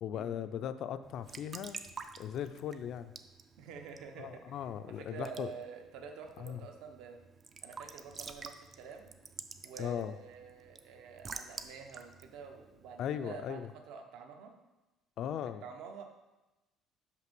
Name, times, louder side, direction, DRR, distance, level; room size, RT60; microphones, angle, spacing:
voice 1, 0.0-1.8 2.2-3.1 4.2-5.5 6.4-6.6 9.8-10.1 13.0-13.7 15.2-15.6, left 9 dB, 45° left, 12 dB, 0.4 m, -38 dB
Raindrop / Drip / Trickle dribble, 1.0-13.5, right 5 dB, 25° right, 0.4 m, -50 dB
voice 2, 3.6-7.2 7.6-9.1 9.6-14.5 15.6-16.0, right 6 dB, 65° right, 4 dB, 0.9 m, -48 dB
5.7 x 5.3 x 6.1 m, 1.0 s
cardioid pair, 175°, 0 cm